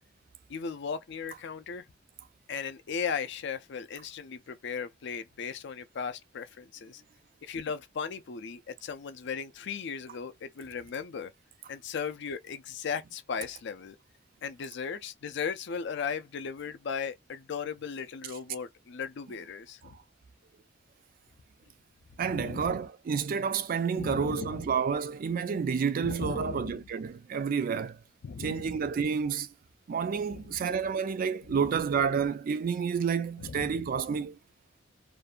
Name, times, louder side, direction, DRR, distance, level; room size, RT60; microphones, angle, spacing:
voice 1, 0.5-1.8 2.5-7.0 7.4-11.3 11.7-14.0 14.4-19.9 22.2-22.8 24.0-24.7 26.0-26.8 28.2-28.9 30.3-30.6 31.5-31.6 33.4-33.7, left 6 dB, 65° left, 0.4 m, -37 dB
voice 2, 22.2-28.0 28.4-29.5 29.9-34.4, right 6 dB, 45° right, 0.3 m, -29 dB
2.6 x 2.1 x 2.4 m
head